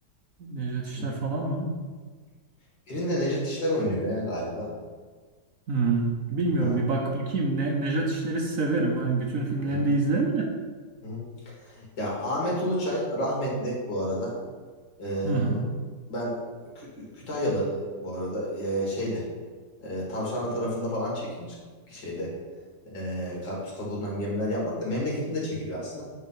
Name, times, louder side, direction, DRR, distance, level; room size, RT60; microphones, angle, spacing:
voice 1, 0.4-1.7 5.7-10.5 15.2-15.6, right 3 dB, 60° right, 1 dB, 1.0 m, -26 dB
voice 2, 2.9-4.7 6.6-6.8 9.7-9.9 11.0-11.2 11.8-14.3 15.0-15.6 16.1-16.4 16.8-19.2 19.8-21.5 21.9-22.3 22.9-26.0, equal, 75° left, -4 dB, 2.7 m, -30 dB
8.1 x 3.5 x 5.6 m, 1.5 s
omnidirectional pair, 1.9 m